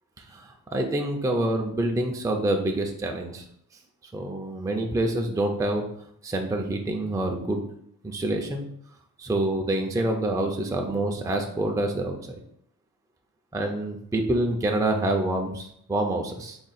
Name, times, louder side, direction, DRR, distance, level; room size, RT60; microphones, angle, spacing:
voice 1, 0.2-3.4 4.1-5.8 6.2-7.6 8.0-8.7 9.2-12.4 13.5-16.6, right 1 dB, 10° right, 2 dB, 0.4 m, -27 dB
3.7 x 2.3 x 4.1 m, 0.69 s
wide cardioid pair, 110°, 38 cm